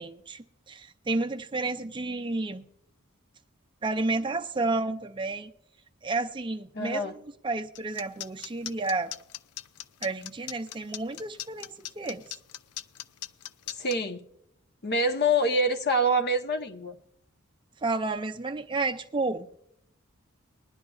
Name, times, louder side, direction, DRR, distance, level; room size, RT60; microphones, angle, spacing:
voice 1, 0.0-2.6 3.8-5.5 6.0-9.1 10.0-12.2 17.8-19.5, right 3 dB, 20° right, 0.5 m, -31 dB
voice 2, 6.7-7.1 13.7-14.2 14.8-17.0, equal, 50° left, 0.9 m, -26 dB
sound 1, 7.7-14.0, left 13 dB, 80° left, 0.4 m, -39 dB
21.0 x 11.0 x 2.3 m
head